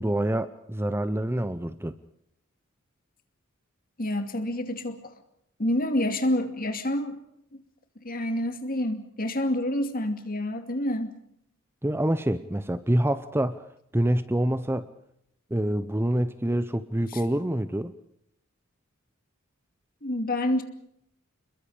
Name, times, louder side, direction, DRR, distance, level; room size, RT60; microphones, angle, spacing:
voice 1, 0.0-2.0 11.8-13.6 13.9-14.9 15.5-17.9, right 1 dB, 10° right, 13 dB, 0.7 m, -26 dB
voice 2, 4.0-5.0 5.6-7.2 8.0-11.2 17.1-17.2 20.0-20.6, left 1 dB, 45° left, 7 dB, 2.5 m, -28 dB
28.0 x 22.0 x 5.0 m, 0.74 s
head